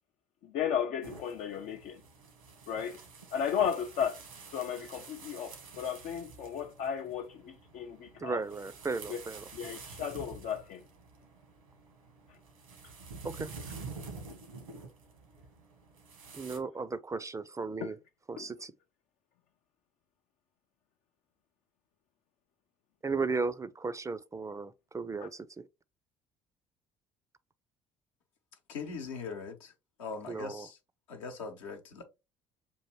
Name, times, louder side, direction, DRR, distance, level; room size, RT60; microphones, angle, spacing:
voice 1, 0.4-2.0 2.7-3.0 3.3-4.2 4.5-8.4 9.1-9.2 9.5-10.8 17.8-17.9 18.4-18.5, left 8 dB, 55° left, 0.5 m, -34 dB
sound 1, 1.0-16.6, right 4 dB, 85° right, 1.3 m, -49 dB
voice 2, 8.2-9.5 13.2-13.5 16.3-18.0 18.3-18.7 23.0-25.7 30.3-30.7, right 4 dB, 20° right, 0.4 m, -35 dB
voice 3, 28.7-29.7 30.0-30.8 31.1-32.0, left 5 dB, 75° left, 0.9 m, -41 dB
6.9 x 2.6 x 3.0 m
figure-of-eight pair, 55°, 17 cm